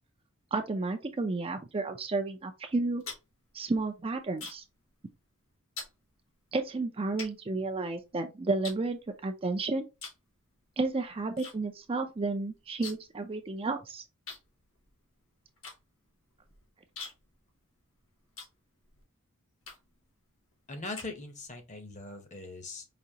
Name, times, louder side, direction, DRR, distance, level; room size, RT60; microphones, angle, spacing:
voice 1, 0.5-3.0 3.5-4.6 6.5-9.9 10.8-14.0, right 3 dB, 25° right, 0.4 m, -32 dB
sound 1, 2.7-4.8 5.1-5.4 5.8-6.0 6.6-6.7 7.2-8.1 8.6-9.5 9.9-10.3 10.6-11.5 11.8-11.9 12.2-13.2 13.5-13.6 14.3-19.0 19.6-20.0 20.5-21.6, left 4 dB, 65° left, 1.3 m, -45 dB
voice 2, 20.7-22.9, left 2 dB, 35° left, 0.8 m, -41 dB
5.0 x 2.8 x 2.8 m
head